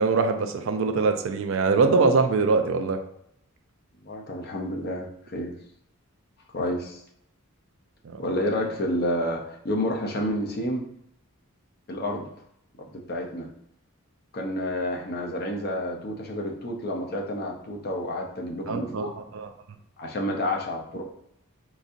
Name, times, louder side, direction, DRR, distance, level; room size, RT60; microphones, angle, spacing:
voice 1, 0.0-3.0 8.0-8.3 18.7-19.5, right 4 dB, 60° right, 7 dB, 0.4 m, -23 dB
voice 2, 4.0-5.5 6.5-7.0 8.2-10.8 11.9-12.3 12.8-13.5 14.3-19.1 20.0-21.0, left 1 dB, 45° left, 2 dB, 0.6 m, -29 dB
3.9 x 2.6 x 2.5 m, 0.75 s
head